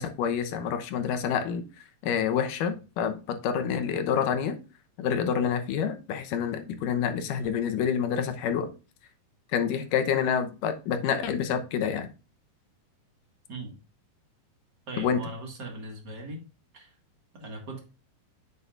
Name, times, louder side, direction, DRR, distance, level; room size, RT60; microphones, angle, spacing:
voice 1, 0.0-1.6 2.0-4.6 5.0-8.7 9.5-12.1 15.0-15.3, left 7 dB, 75° left, 8 dB, 2.4 m, -27 dB
voice 2, 14.9-16.4 16.7-16.9 17.3-17.8, right 2 dB, 40° right, 1 dB, 1.8 m, -39 dB
8.7 x 6.8 x 2.5 m, 0.32 s
omnidirectional pair, 3.9 m